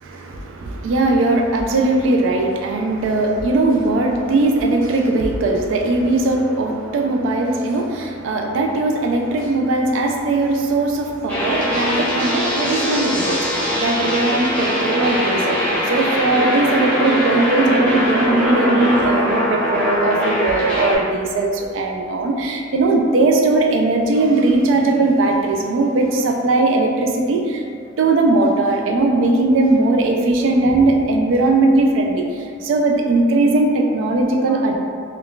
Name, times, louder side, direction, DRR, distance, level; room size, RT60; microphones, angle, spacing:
voice 1, 0.0-15.6 15.9-27.6 28.0-32.2 32.6-34.8, right 2 dB, 90° right, 3 dB, 0.3 m, -19 dB
sound 1, 11.3-21.0, equal, 5° left, 0.6 m, -21 dB
2.2 x 2.2 x 3.7 m, 2.3 s
head